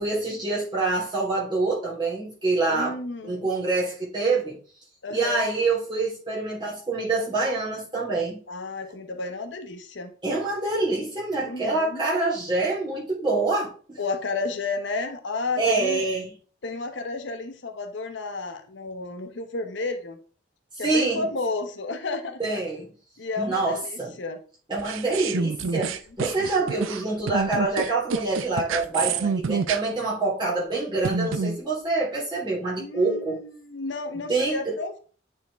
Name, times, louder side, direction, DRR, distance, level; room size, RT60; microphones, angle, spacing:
voice 1, 0.0-3.0 3.2-4.6 5.1-8.4 10.2-14.0 15.6-16.3 20.7-21.3 22.4-22.9 23.4-24.2 24.7-33.4 34.3-34.7, right 3 dB, 25° right, 3.4 m, -26 dB
voice 2, 2.7-3.5 5.0-5.4 8.5-10.1 11.4-12.0 14.0-16.1 16.6-20.2 20.8-22.6 23.2-24.4 32.8-35.0, left 3 dB, 65° left, 0.8 m, -32 dB
sound 1, 24.8-29.8 31.0-31.6, right 5 dB, 85° right, 0.5 m, -27 dB
9.2 x 4.4 x 3.4 m
head